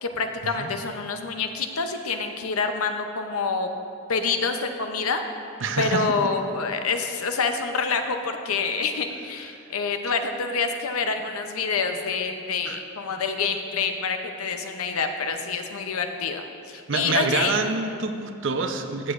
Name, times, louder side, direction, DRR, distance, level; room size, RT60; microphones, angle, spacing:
voice 1, 0.0-3.7 4.1-5.2 5.8-17.6, left 4 dB, 85° left, 6 dB, 0.7 m, -27 dB
voice 2, 5.6-6.1 12.7-12.8 16.9-19.1, right 4 dB, 60° right, 6 dB, 0.6 m, -26 dB
14.5 x 8.1 x 2.5 m, 2.6 s
head